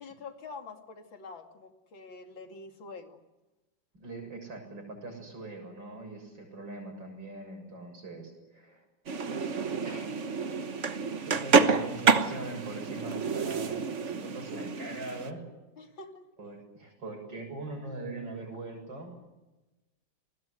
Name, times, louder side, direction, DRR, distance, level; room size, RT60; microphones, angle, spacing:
voice 1, 0.0-3.2 15.8-16.6, left 4 dB, 90° left, 5 dB, 3.3 m, -46 dB
voice 2, 3.9-8.8 9.8-10.3 10.8-15.4 16.4-19.2, right 2 dB, 75° right, 4 dB, 7.8 m, -42 dB
sound 1, 9.1-15.3, right 5 dB, 45° right, 1.4 m, -28 dB
28.0 x 20.5 x 8.0 m, 1.1 s
omnidirectional pair, 2.1 m